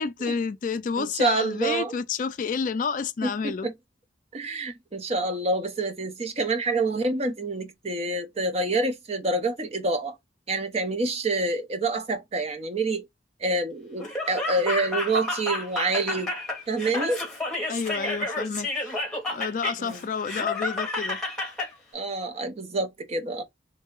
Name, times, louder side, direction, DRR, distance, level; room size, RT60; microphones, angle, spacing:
voice 1, 0.0-3.7 17.7-19.0 19.3-21.2, left 5 dB, 45° left, 0.3 m, -29 dB
voice 2, 1.0-2.0 3.2-3.7 4.3-10.1 10.5-13.0 13.4-16.3 16.7-17.2 19.8-20.0 21.9-23.4, right 2 dB, 35° right, 0.6 m, -27 dB
Laughter, 14.0-21.7, left 2 dB, 5° left, 1.2 m, -30 dB
3.2 x 2.7 x 3.6 m
head